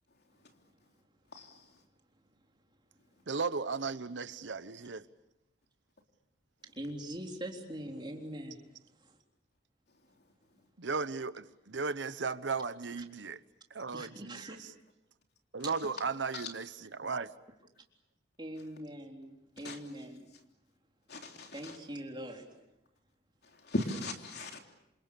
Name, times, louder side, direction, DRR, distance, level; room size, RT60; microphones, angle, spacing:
voice 1, 1.3-1.8 10.0-10.2 10.5-10.7 15.6-15.7 16.3-16.5 19.6-19.8 21.1-21.8 23.4-24.6, left 1 dB, 60° left, 3.4 m, -39 dB
voice 2, 3.3-5.1 10.8-13.4 13.7-14.6 15.5-17.3, right 4 dB, 85° right, 1.0 m, -36 dB
voice 3, 6.6-8.6 9.0-9.2 13.0-13.1 13.9-14.6 15.6-15.7 18.4-20.3 21.5-22.6, right 1 dB, 25° right, 3.8 m, -42 dB
28.0 x 27.0 x 7.0 m
head